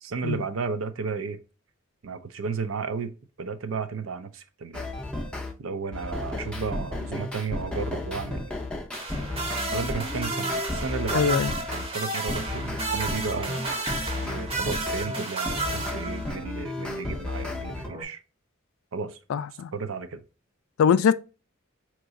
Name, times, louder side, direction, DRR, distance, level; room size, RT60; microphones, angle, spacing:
voice 1, 0.0-1.4 2.0-4.9 5.6-8.5 9.7-11.4 11.7-13.7 14.1-18.2 18.9-19.2 19.7-20.2, right 5 dB, 80° right, 0.5 m, -33 dB
sound 1, 4.7-5.5 5.9-11.9 12.3-17.9, left 2 dB, 5° left, 0.5 m, -33 dB
sound 2, 8.9-16.5 17.9-18.0, right 2 dB, 30° right, 0.7 m, -32 dB
voice 2, 11.1-11.5 19.3-19.7 20.8-21.1, left 7 dB, 80° left, 0.3 m, -22 dB
4.7 x 3.0 x 2.5 m
head